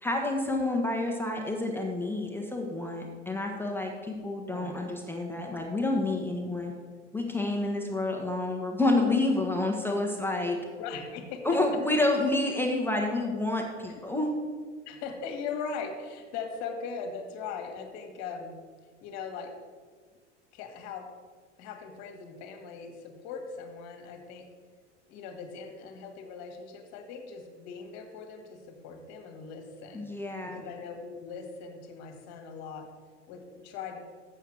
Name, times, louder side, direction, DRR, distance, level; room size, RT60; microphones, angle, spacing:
voice 1, 0.0-6.7 7.1-10.6 11.4-14.3 29.9-30.6, left 2 dB, 5° left, 0 dB, 1.1 m, -29 dB
voice 2, 4.5-4.8 10.8-11.6 12.0-12.1 13.9-14.0 14.8-18.6 19.0-19.5 20.5-21.1 21.6-24.5 25.1-30.1 30.4-32.9 33.3-34.0, left 5 dB, 50° left, 4 dB, 1.6 m, -40 dB
7.2 x 6.9 x 6.3 m, 1.5 s
figure-of-eight pair, 85°, 36 cm